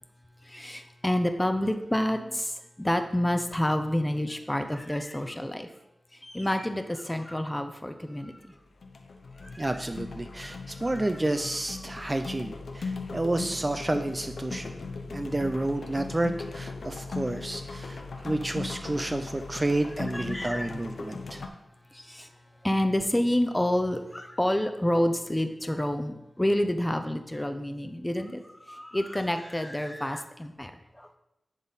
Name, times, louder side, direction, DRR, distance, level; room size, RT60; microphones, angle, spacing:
voice 1, 0.5-2.5 2.8-5.7 6.2-8.3 10.9-11.1 20.1-20.7 22.1-22.3 22.6-28.4 28.7-30.7, left 1 dB, 15° left, 7 dB, 0.7 m, -28 dB
sound 1, 8.2-8.5 8.8-21.5, left 3 dB, 80° left, 0.7 m, -38 dB
voice 2, 9.6-14.7 15.1-21.4, right 2 dB, 25° right, 7 dB, 0.4 m, -30 dB
10.5 x 4.1 x 4.0 m, 0.90 s
wide cardioid pair, 70°, 0 cm